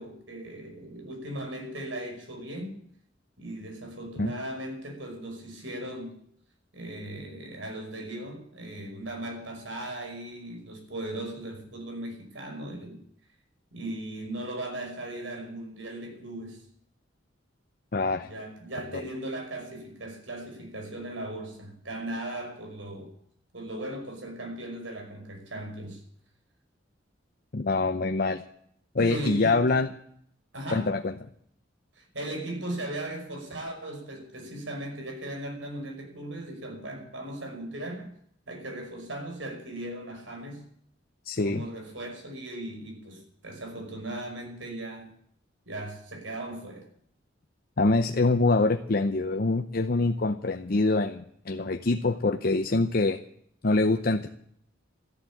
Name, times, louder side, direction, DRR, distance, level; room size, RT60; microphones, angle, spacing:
voice 1, 0.0-2.8 3.4-6.2 6.7-13.0 13.7-16.7 18.2-23.1 23.5-26.0 29.0-29.8 30.5-30.9 32.0-38.1 38.5-40.7 41.4-45.1 45.7-46.9, right 1 dB, 75° right, 5.5 m, -38 dB
voice 2, 17.9-18.3 27.5-28.4 28.9-29.9 30.7-31.1 41.2-41.7 47.8-53.2 53.6-54.3, left 3 dB, 50° left, 0.7 m, -25 dB
13.5 x 11.5 x 8.6 m
head